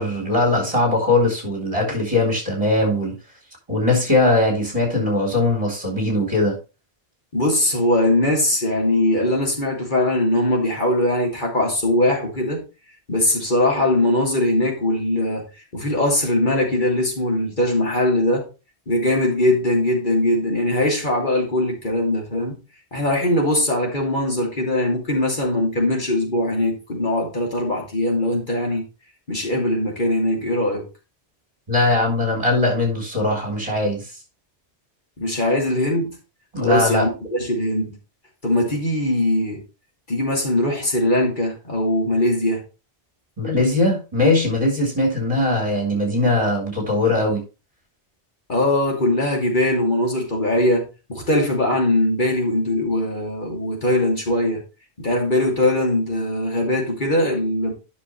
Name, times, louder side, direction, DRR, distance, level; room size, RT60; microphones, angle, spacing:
voice 1, 0.0-3.2 3.7-6.6 31.7-34.0 36.5-37.1 43.4-47.4, left 2 dB, 30° right, 3.7 m, -20 dB
voice 2, 7.3-12.6 13.1-15.4 15.7-18.4 18.9-22.6 22.9-28.9 29.3-30.8 35.2-36.2 36.6-38.0 38.4-39.6 40.1-42.6 48.5-54.6 55.0-57.7, left 1 dB, 50° left, 2.9 m, -21 dB
10.0 x 6.1 x 3.2 m
omnidirectional pair, 1.1 m